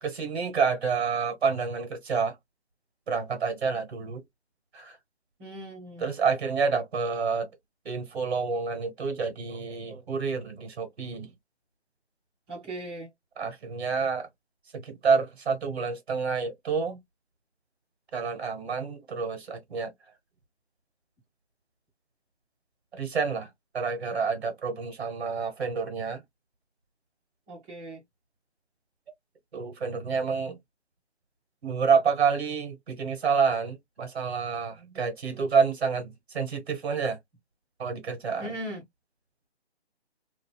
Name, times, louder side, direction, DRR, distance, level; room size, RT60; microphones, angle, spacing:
voice 1, 0.0-2.4 3.1-4.2 4.7-5.0 6.0-7.5 7.8-11.3 13.4-14.3 14.7-17.0 18.1-19.9 22.9-23.5 23.7-26.2 29.5-30.6 31.6-37.2 37.8-38.5, right 5 dB, 65° right, 1.3 m, -28 dB
voice 2, 5.4-6.1 12.5-13.1 27.5-28.0 38.4-38.8, right 1 dB, 10° right, 0.7 m, -38 dB
2.6 x 2.4 x 2.2 m
hypercardioid pair, 155°, 34 cm